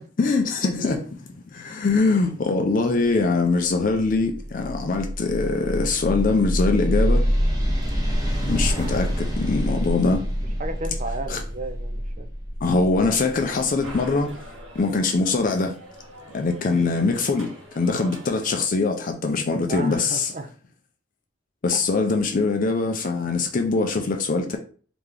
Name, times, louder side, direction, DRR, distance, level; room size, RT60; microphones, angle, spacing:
voice 1, 0.2-7.3 8.5-10.3 11.3-11.4 12.6-14.4 14.7-15.8 16.3-20.3 21.6-24.6, left 3 dB, 40° left, 0.4 m, -23 dB
sound 1, 4.2-14.6, equal, 20° right, 1.0 m, -26 dB
voice 2, 10.6-12.3 16.7-16.8 19.7-20.5, right 2 dB, 40° right, 0.5 m, -33 dB
sound 2, 13.2-18.6, equal, 85° right, 1.4 m, -43 dB
3.3 x 2.9 x 3.7 m
head